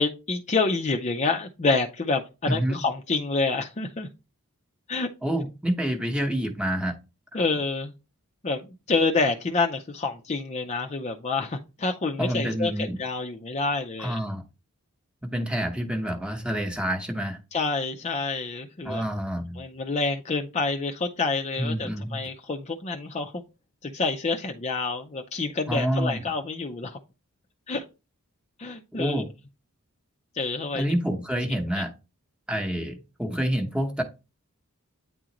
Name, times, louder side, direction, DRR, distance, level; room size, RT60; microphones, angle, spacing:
voice 1, 0.0-4.1 4.9-5.1 7.3-7.9 8.4-14.2 17.5-19.0 19.6-23.4 23.8-27.0 27.7-27.8 28.6-29.2 30.4-30.8 31.7-31.8, left 3 dB, 30° left, 0.5 m, -28 dB
voice 2, 2.5-2.8 5.2-6.9 7.3-7.4 12.2-13.0 14.0-14.4 15.2-17.4 18.8-19.6 21.6-22.2 25.7-26.2 28.9-29.3 30.7-31.9 32.5-34.0, equal, 5° right, 0.9 m, -28 dB
9.2 x 3.7 x 3.0 m
head